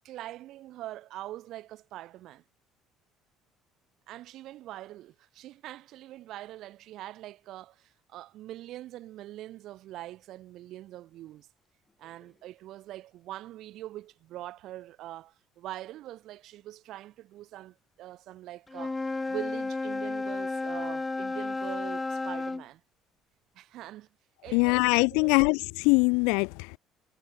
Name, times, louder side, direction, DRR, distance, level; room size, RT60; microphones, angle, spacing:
voice 1, 0.0-2.4 4.1-11.5 12.0-22.8 23.5-24.1 24.4-24.8 25.1-25.5, right 14 dB, 70° right, 3.1 m, -43 dB
Wind instrument woodwind instrument, 18.7-22.7, left 3 dB, 20° left, 0.7 m, -32 dB
voice 2, 24.5-26.8, left 31 dB, 80° left, 0.4 m, -23 dB
supercardioid pair, 75°, 0 cm